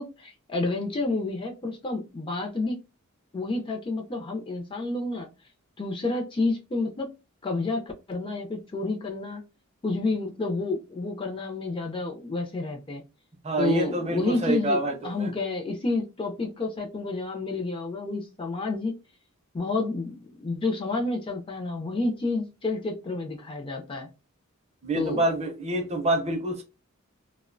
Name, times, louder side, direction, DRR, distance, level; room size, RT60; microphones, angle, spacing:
voice 1, 0.0-2.8 3.3-5.3 5.8-7.1 7.4-9.4 9.8-13.0 13.6-19.0 19.5-24.1 24.9-25.2, left 3 dB, 25° left, 0.4 m, -29 dB
voice 2, 13.4-14.9 15.2-15.3 24.8-26.6, right 1 dB, 30° right, 0.5 m, -26 dB
2.4 x 2.1 x 2.4 m
head